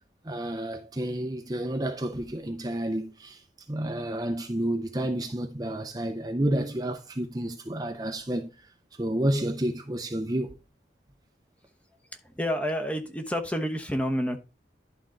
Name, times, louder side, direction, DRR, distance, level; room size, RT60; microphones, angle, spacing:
voice 1, 0.2-8.5 9.0-10.6, right 1 dB, 20° right, 0.7 m, -30 dB
voice 2, 12.2-14.4, equal, 10° left, 1.0 m, -29 dB
11.5 x 4.4 x 3.8 m
head